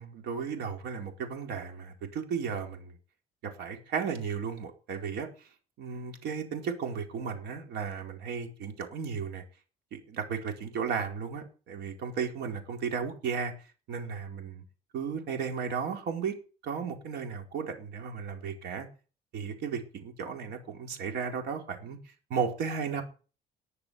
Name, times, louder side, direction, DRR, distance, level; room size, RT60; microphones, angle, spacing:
voice 1, 0.0-3.0 3.4-5.3 5.8-9.4 9.9-13.5 13.9-14.6 14.9-16.4 16.6-18.9 19.3-22.0 22.3-23.0, right 6 dB, 80° right, 4 dB, 4.3 m, -34 dB
20.0 x 6.7 x 7.0 m, 0.36 s
cardioid pair, 110°, 17 cm